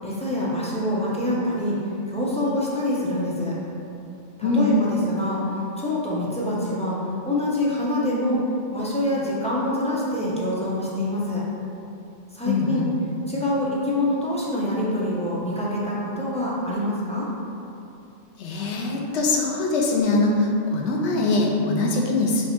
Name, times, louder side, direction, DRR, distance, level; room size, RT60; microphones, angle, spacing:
voice 1, 0.0-1.8 2.1-3.5 4.4-5.4 5.8-7.0 7.2-8.4 8.7-11.4 12.3-12.8 13.3-17.3, left 1 dB, 10° left, -7 dB, 0.4 m, -25 dB
voice 2, 12.5-12.9 18.4-22.5, left 3 dB, 75° left, 0 dB, 0.9 m, -22 dB
3.2 x 2.8 x 4.3 m, 2.7 s
omnidirectional pair, 1.2 m